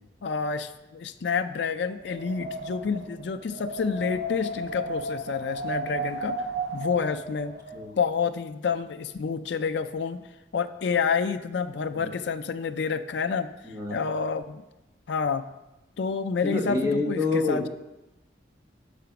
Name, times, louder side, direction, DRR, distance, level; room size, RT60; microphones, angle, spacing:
voice 1, 0.2-6.4 6.7-7.5 8.0-10.2 10.5-13.5 13.9-14.6 15.1-15.5 16.0-17.7, left 5 dB, 70° left, 9 dB, 0.4 m, -28 dB
Wind, 1.9-7.9, right 1 dB, 85° right, 2.9 m, -34 dB
voice 2, 13.6-14.0 16.4-17.7, left 3 dB, 20° right, -1 dB, 1.2 m, -27 dB
6.7 x 5.1 x 5.7 m, 0.97 s
head